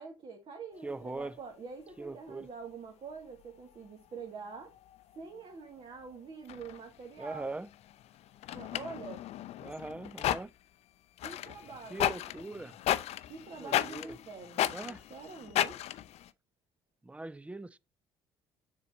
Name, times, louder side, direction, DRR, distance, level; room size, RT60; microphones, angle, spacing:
voice 1, 0.0-4.7 5.1-7.5 8.5-9.3 11.2-12.2 13.3-16.0, right 5 dB, 45° right, 1.6 m, -46 dB
sound 1, 0.7-2.3 2.7-2.8 3.1-6.1 6.4-10.6 11.2-16.3, left 12 dB, 55° left, 0.5 m, -36 dB
voice 2, 0.8-1.4 2.0-2.5 7.2-7.7 9.6-10.5 11.9-12.8 13.6-14.2 14.7-15.0 17.0-17.8, right 2 dB, 10° right, 0.4 m, -41 dB
6.9 x 4.3 x 4.1 m
hypercardioid pair, 55°, 13 cm